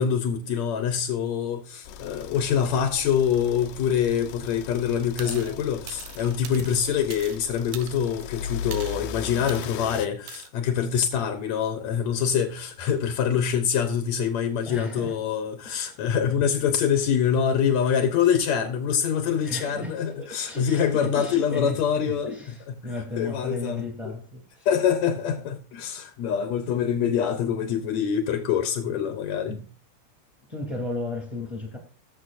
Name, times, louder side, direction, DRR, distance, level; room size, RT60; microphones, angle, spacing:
voice 1, 0.0-22.3 22.7-22.8 23.2-24.1 24.7-29.6, left 8 dB, 65° left, 2.0 m, -25 dB
sound 1, 1.8-10.1, left 7 dB, 80° left, 2.3 m, -38 dB
voice 2, 5.2-5.6 14.7-15.2 15.6-16.0 19.4-21.8 22.1-22.5 22.8-24.7 29.5-29.6 30.5-31.8, left 2 dB, 10° right, 2.3 m, -34 dB
sound 2, 5.2-5.5 5.9-7.4 7.7-8.2 8.7-9.0 9.5-9.7 10.3-10.5, right 12 dB, 90° right, 2.5 m, -41 dB
20.0 x 7.1 x 2.6 m
omnidirectional pair, 3.8 m